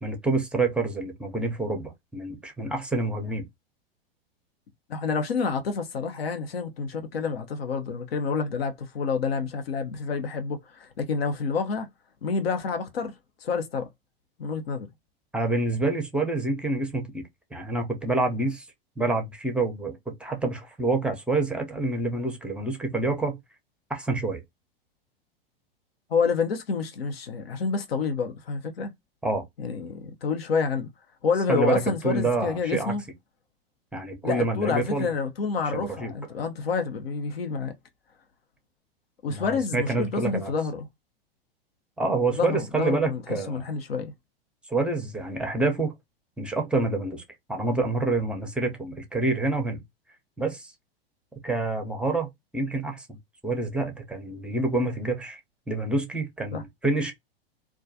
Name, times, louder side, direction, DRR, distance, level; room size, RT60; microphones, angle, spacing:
voice 1, 0.0-3.4 15.3-17.2 17.5-18.6 19.0-23.4 23.9-24.4 29.2-29.4 31.5-32.9 33.9-35.1 35.7-36.1 39.3-40.5 42.0-43.6 44.7-45.9 46.4-47.2 47.5-49.8 50.4-50.7 51.4-52.3 52.5-53.2 53.4-55.4 55.7-57.1, right 2 dB, 5° right, 0.6 m, -27 dB
voice 2, 4.9-11.9 12.2-13.1 13.4-13.9 14.4-14.9 26.1-28.9 29.6-30.9 31.2-33.0 34.2-37.7 39.2-40.9 42.3-43.2 43.5-44.1 56.5-56.6, left 5 dB, 80° left, 0.7 m, -28 dB
2.3 x 2.2 x 2.6 m
hypercardioid pair, 100°, 30 cm